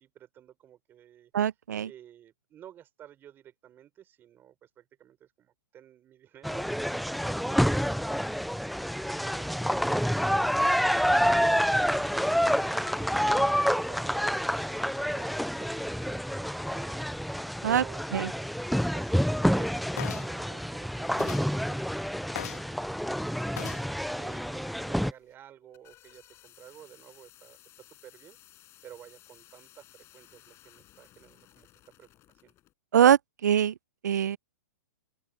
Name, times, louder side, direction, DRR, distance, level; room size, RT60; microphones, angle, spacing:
voice 1, 0.0-11.9 12.5-17.0 17.6-18.5 18.9-28.4 28.8-32.5, right 11 dB, 20° right, 5.9 m, -52 dB
voice 2, 1.3-1.9 17.6-17.8 18.1-18.3 32.9-33.7 34.0-34.4, right 9 dB, 75° right, 0.6 m, -23 dB
sound 1, 6.4-25.1, equal, ahead, 0.4 m, -28 dB
sound 2, 20.0-20.4 21.2-21.5 22.3-22.7 23.6-23.9 24.7-24.8, left 12 dB, 65° left, 1.6 m, -38 dB
sound 3, 25.4-32.7, left 15 dB, 30° left, 6.9 m, -57 dB
open air
hypercardioid pair, 135°, 9 cm